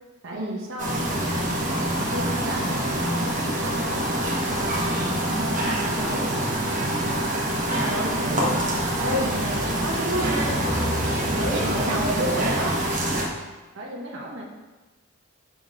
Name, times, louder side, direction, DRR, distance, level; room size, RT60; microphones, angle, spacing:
voice 1, 0.2-1.6 2.0-7.3 11.6-12.5 13.7-14.4, right 1 dB, 60° right, -2 dB, 1.0 m, -35 dB
sound 1, 0.8-13.3, right 1 dB, 40° right, 1.2 m, -25 dB
voice 2, 7.8-10.6 11.3-12.7, right 1 dB, 90° right, 0 dB, 1.1 m, -29 dB
6.0 x 4.0 x 4.9 m, 1.2 s
head